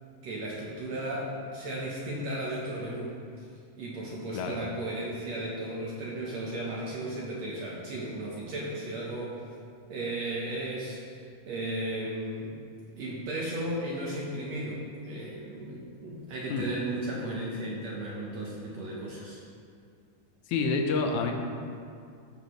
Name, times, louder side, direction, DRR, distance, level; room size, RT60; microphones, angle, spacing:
voice 1, 0.2-3.5 3.8-9.4 9.9-12.6 13.0-19.4, right 1 dB, 65° right, -4 dB, 1.9 m, -35 dB
voice 2, 20.5-21.3, left 4 dB, 75° left, 3 dB, 2.1 m, -28 dB
14.5 x 6.5 x 3.1 m, 2.3 s
omnidirectional pair, 3.9 m